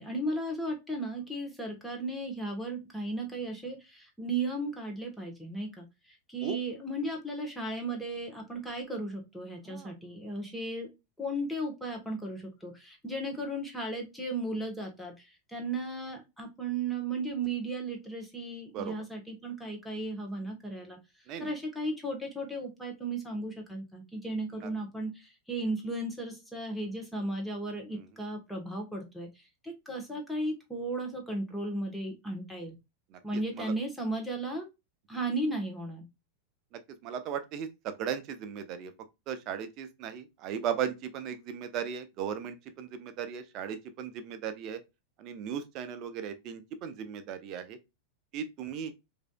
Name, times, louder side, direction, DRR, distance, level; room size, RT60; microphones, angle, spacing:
voice 1, 0.0-10.9 11.2-21.0 21.4-29.3 29.6-32.7 33.2-34.7 35.1-36.1, right 2 dB, 5° left, 1.2 m, -35 dB
voice 2, 37.0-38.9 39.3-44.8 45.2-47.8 48.3-48.9, right 8 dB, 40° right, 0.6 m, -37 dB
4.9 x 2.7 x 2.2 m
figure-of-eight pair, 90°, 0 cm